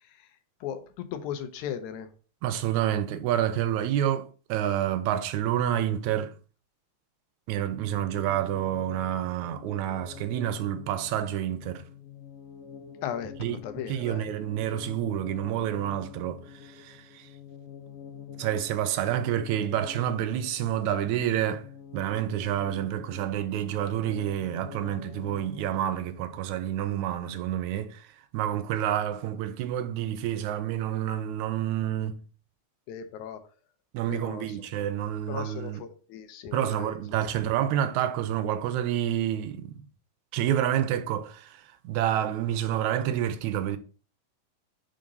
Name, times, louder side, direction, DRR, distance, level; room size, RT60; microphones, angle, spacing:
voice 1, 0.6-2.1 13.0-14.3 32.9-33.4 34.1-34.9 35.3-37.2, left 9 dB, 90° left, 2.2 m, -37 dB
voice 2, 2.4-6.3 7.5-11.8 13.4-13.6 13.9-17.3 18.4-21.7 21.9-28.1 28.3-32.2 33.9-35.8 36.5-39.8 40.3-43.8, right 11 dB, 90° right, 2.0 m, -28 dB
sound 1, 7.8-26.6, left 8 dB, 70° left, 1.4 m, -46 dB
5.1 x 3.8 x 5.3 m
omnidirectional pair, 3.3 m